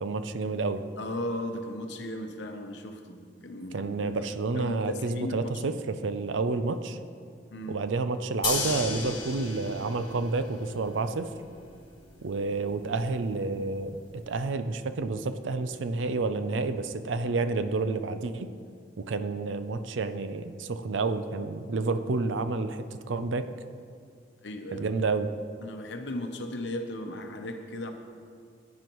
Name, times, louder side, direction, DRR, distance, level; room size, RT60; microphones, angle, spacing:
voice 1, 0.0-0.8 3.7-7.0 7.7-11.3 12.2-14.0 14.3-18.5 19.0-23.5 24.7-25.3, right 3 dB, 90° right, 10 dB, 0.5 m, -29 dB
voice 2, 1.0-5.6 7.5-7.8 24.4-24.9 25.6-27.9, left 1 dB, 65° left, 5 dB, 0.8 m, -36 dB
sound 1, 8.4-14.5, left 4 dB, 30° left, 2.1 m, -37 dB
15.0 x 9.5 x 3.1 m, 2.2 s
head